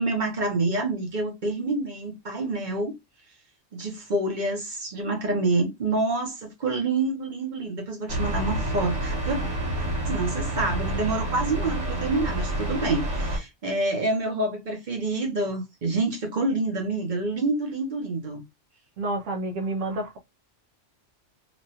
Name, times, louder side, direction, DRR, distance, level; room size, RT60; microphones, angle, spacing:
voice 1, 0.0-2.9 3.7-9.5 10.1-18.4, right 2 dB, 45° right, 0.8 m, -27 dB
sound 1, 8.1-13.4, right 1 dB, 70° right, 1.5 m, -28 dB
voice 2, 19.0-20.2, right 2 dB, 85° right, 1.1 m, -29 dB
3.0 x 2.3 x 2.6 m
omnidirectional pair, 1.3 m